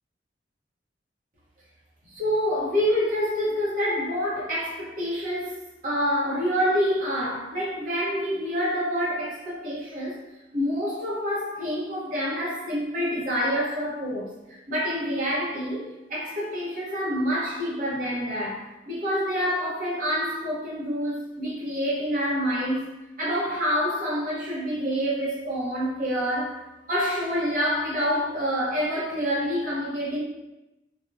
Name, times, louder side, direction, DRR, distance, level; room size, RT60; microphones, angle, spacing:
voice 1, 2.1-10.2 10.5-14.3 14.7-22.9 23.2-30.2, equal, 45° right, -7 dB, 0.7 m, -27 dB
2.5 x 2.0 x 2.4 m, 1.0 s
head